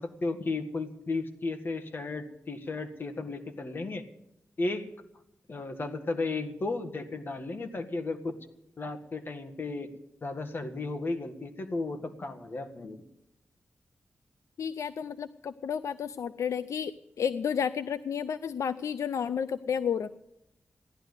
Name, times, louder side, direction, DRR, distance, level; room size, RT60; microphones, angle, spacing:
voice 1, 0.0-4.0 4.6-4.9 5.5-8.3 8.8-9.9 10.2-13.0, left 3 dB, 45° left, 7 dB, 1.7 m, -34 dB
voice 2, 14.6-20.1, left 7 dB, 85° left, 13 dB, 0.5 m, -31 dB
15.5 x 11.5 x 8.1 m, 0.81 s
wide cardioid pair, 110°, 5 cm